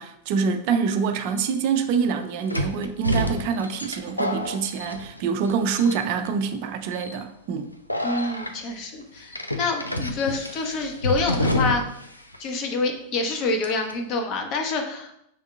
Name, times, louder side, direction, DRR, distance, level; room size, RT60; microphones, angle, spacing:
voice 1, 0.0-7.7, right 6 dB, 45° right, 6 dB, 0.4 m, -25 dB
sound 1, 1.2-1.3 2.5-5.5 5.8-6.3 6.9-7.2 7.9-8.5 9.3-12.1 12.3-12.4 13.6-13.9, left 1 dB, 85° left, 0.4 m, -28 dB
voice 2, 8.0-11.8 12.4-15.1, left 3 dB, 40° left, 3 dB, 0.8 m, -27 dB
6.2 x 3.6 x 2.3 m, 0.75 s
figure-of-eight pair, 90°, 0 cm